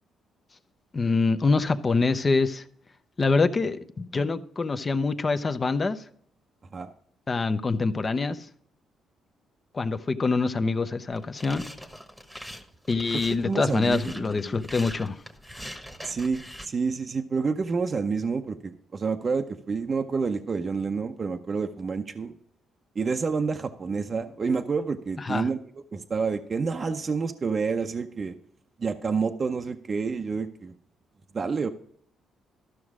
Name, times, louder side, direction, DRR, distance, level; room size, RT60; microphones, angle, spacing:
voice 1, 0.9-2.6 3.2-6.0 7.3-8.4 9.7-11.6 12.9-15.2 25.2-25.5, left 3 dB, 30° left, 0.7 m, -25 dB
sound 1, 11.1-16.7, equal, ahead, 1.2 m, -42 dB
voice 2, 13.4-14.6 16.0-22.3 23.0-25.6 25.9-28.3 28.8-30.7 31.3-31.7, right 5 dB, 40° right, 0.6 m, -28 dB
13.0 x 6.2 x 4.8 m
cardioid pair, 90°, 0 cm